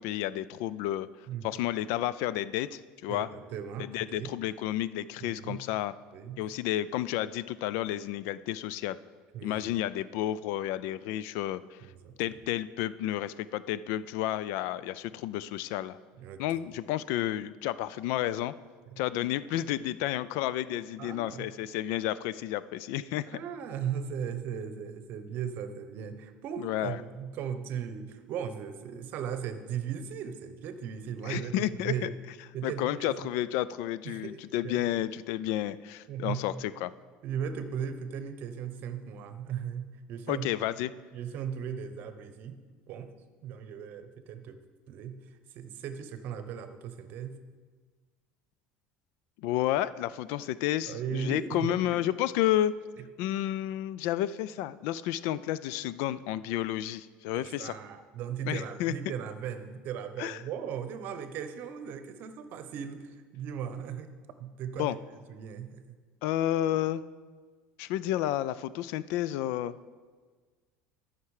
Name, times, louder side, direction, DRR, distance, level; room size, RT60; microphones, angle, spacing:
voice 1, 0.0-1.1 1.4-3.3 3.9-5.9 6.4-9.0 9.4-11.6 12.2-16.0 16.4-18.5 19.0-23.2 26.6-27.0 31.2-32.1 32.6-36.9 40.3-40.9 49.4-52.7 53.2-57.8 58.4-58.9 60.2-60.4 64.8-64.9 66.2-67.0 67.8-69.7, left 13 dB, 70° left, 17 dB, 0.3 m, -31 dB
voice 2, 3.1-4.4 5.2-5.7 6.1-6.4 9.3-9.7 11.8-12.4 16.2-16.6 18.9-19.0 21.0-21.5 23.2-31.5 31.8-32.2 32.5-33.3 34.0-34.9 36.1-36.6 37.2-40.5 41.1-42.6 42.9-43.1 43.4-44.6 44.9-47.4 50.9-52.0 53.0-53.1 57.3-64.1 64.4-65.8, right 8 dB, 50° right, 10 dB, 0.8 m, -37 dB
13.0 x 5.8 x 4.8 m, 1.5 s
cardioid pair, 135°, 4 cm